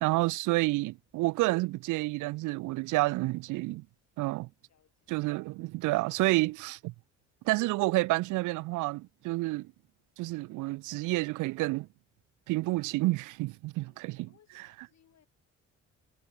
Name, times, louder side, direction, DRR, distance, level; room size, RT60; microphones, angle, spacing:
voice 1, 0.0-3.8 4.2-4.5 5.1-6.9 7.5-9.7 10.2-11.9 12.5-14.3, right 20 dB, 85° right, 0.4 m, -29 dB
voice 2, 4.7-5.2 13.8-15.3, left 9 dB, 60° left, 7.5 m, -67 dB
cardioid pair, 90°, 30 cm